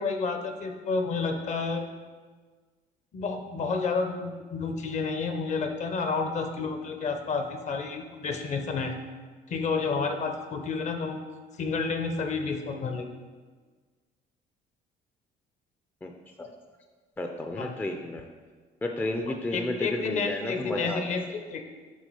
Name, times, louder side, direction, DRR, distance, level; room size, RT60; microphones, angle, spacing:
voice 1, 0.0-1.9 3.1-9.0 9.5-11.2 11.6-13.1 17.6-17.8 19.3-21.6, left 4 dB, 45° left, 6 dB, 0.7 m, -30 dB
voice 2, 17.2-18.3 18.8-21.2, left 1 dB, 10° left, 4 dB, 0.4 m, -32 dB
6.3 x 3.4 x 5.4 m, 1.5 s
cardioid pair, 110°, 17 cm